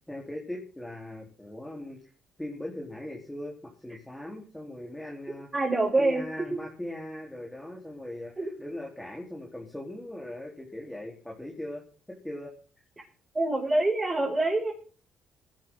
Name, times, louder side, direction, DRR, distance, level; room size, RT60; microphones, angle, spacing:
voice 1, 0.1-2.1 2.4-5.5 6.0-11.8 12.1-12.5, left 1 dB, 5° left, -1 dB, 4.2 m, -39 dB
voice 2, 5.5-6.2 8.4-8.5 13.3-14.7, right 2 dB, 20° right, -3 dB, 6.9 m, -25 dB
19.5 x 12.5 x 4.0 m, 0.39 s
cardioid pair, 90°, 0 cm